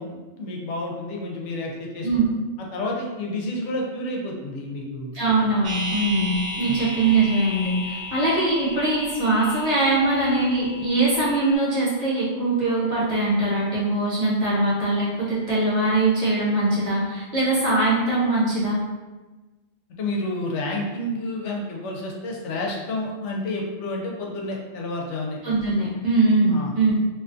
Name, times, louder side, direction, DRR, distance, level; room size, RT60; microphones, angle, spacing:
voice 1, 0.0-2.2 2.6-5.2 6.6-6.8 20.0-25.4 26.5-26.7, left 2 dB, 85° left, -1 dB, 0.9 m, -30 dB
voice 2, 5.1-18.8 25.4-26.9, right 2 dB, 35° right, -9 dB, 1.1 m, -22 dB
sound 1, 5.6-11.6, equal, 70° right, 1.1 m, -34 dB
2.6 x 2.3 x 2.5 m, 1.2 s
omnidirectional pair, 1.2 m